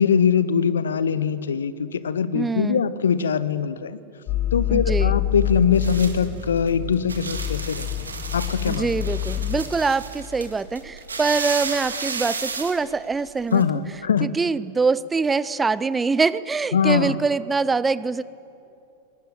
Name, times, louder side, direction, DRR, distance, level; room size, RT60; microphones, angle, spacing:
voice 1, 0.0-4.0 4.5-7.9 8.3-8.9 13.5-14.3 16.7-17.2, left 6 dB, 65° left, 16 dB, 0.9 m, -22 dB
voice 2, 2.3-2.8 4.7-5.2 8.7-13.6 14.2-18.2, right 4 dB, 15° right, 18 dB, 0.5 m, -24 dB
sound 1, 4.3-9.7, left 13 dB, 40° left, 2.9 m, -27 dB
sound 2, 4.8-13.6, right 4 dB, 75° right, 2.1 m, -33 dB
21.5 x 18.5 x 9.1 m, 2.7 s
figure-of-eight pair, 90°, 0 cm